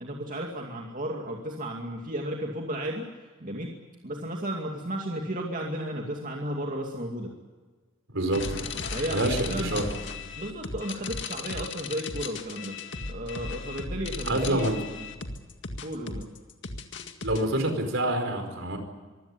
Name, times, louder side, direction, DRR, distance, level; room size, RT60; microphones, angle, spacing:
voice 1, 0.0-3.1 3.4-3.7 4.0-7.3 8.9-9.8 10.4-12.8 13.1-14.7 15.8-16.3, right 1 dB, 40° right, 0 dB, 2.4 m, -33 dB
voice 2, 8.1-8.7 9.1-9.9 14.2-14.8 17.2-18.8, right 1 dB, 65° right, 6 dB, 4.9 m, -27 dB
sound 1, 8.3-17.4, left 4 dB, 60° left, 2.0 m, -36 dB
24.5 x 16.0 x 9.7 m, 1.4 s
head